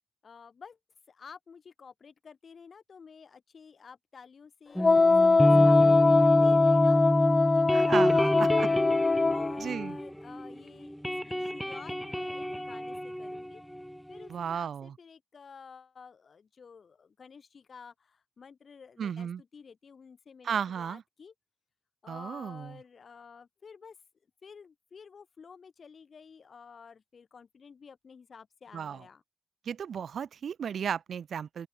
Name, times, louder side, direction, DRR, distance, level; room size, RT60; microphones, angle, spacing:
voice 1, 0.2-0.8 1.1-4.8 5.2-8.8 9.3-13.6 14.1-21.3 22.0-24.0 24.4-29.2, left 6 dB, 70° left, 6.9 m, -51 dB
Wind instrument woodwind instrument, 4.8-9.5, left 3 dB, 45° left, 0.7 m, -22 dB
sound 1, 4.8-10.6 10.8-14.3, equal, ahead, 0.6 m, -28 dB
voice 2, 7.7-8.7 9.6-10.0 14.3-14.9 19.0-19.4 20.4-21.0 22.1-22.7 28.7-29.0 29.7-31.7, right 7 dB, 90° right, 0.6 m, -34 dB
open air
cardioid pair, 55°, 0 cm